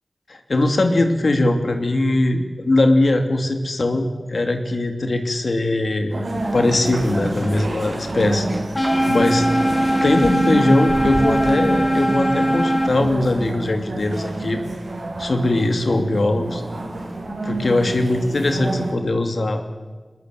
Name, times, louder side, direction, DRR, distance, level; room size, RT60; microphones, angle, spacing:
voice 1, 0.3-6.2 6.5-8.5 9.0-9.5 10.0-14.6 15.2-16.6 17.4-19.6, left 2 dB, 75° left, 5 dB, 2.8 m, -20 dB
sound 1, 6.1-18.9, right 2 dB, 80° right, 6.6 m, -29 dB
sound 2, 6.3-11.6, right 1 dB, 40° right, 2.5 m, -33 dB
sound 3, 8.7-12.9, equal, 30° left, 3.8 m, -20 dB
22.5 x 20.5 x 9.3 m, 1.4 s
wide cardioid pair, 65°, 0 cm